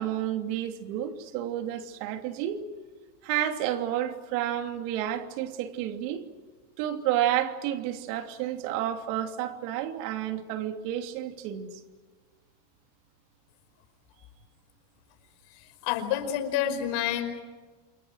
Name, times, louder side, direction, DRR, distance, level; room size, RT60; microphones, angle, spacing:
voice 1, 0.0-2.7 3.2-6.2 6.8-11.8, right 11 dB, 75° right, 3.1 m, -30 dB
voice 2, 15.8-17.4, left 10 dB, 65° left, 5.2 m, -28 dB
28.5 x 28.0 x 6.5 m
supercardioid pair, 130°, 47 cm